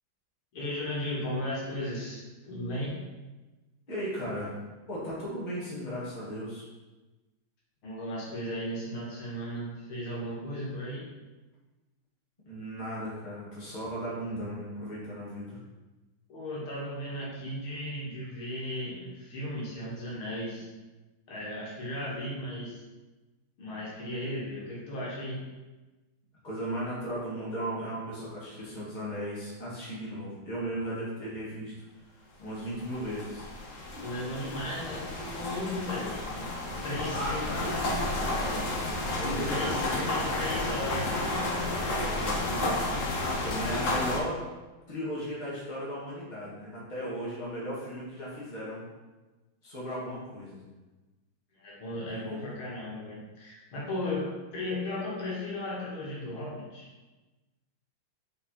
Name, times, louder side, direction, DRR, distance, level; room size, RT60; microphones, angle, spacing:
voice 1, 0.5-3.0 7.8-11.1 16.3-20.7 21.3-22.8 23.6-25.4 34.0-36.4 36.8-38.0 39.3-42.8 51.6-56.9, left 1 dB, 75° left, -5 dB, 2.4 m, -36 dB
voice 2, 3.9-4.6 4.9-6.7 12.5-15.6 26.4-31.7 32.4-33.4 33.9-34.1 37.1-37.8 39.2-40.1 43.2-44.4 44.9-48.9 49.6-50.6 51.9-52.4, equal, 20° left, -8 dB, 2.1 m, -36 dB
sound 1, 32.7-44.2, left 2 dB, 50° left, 1.0 m, -31 dB
5.2 x 4.7 x 4.4 m, 1.2 s
omnidirectional pair, 2.3 m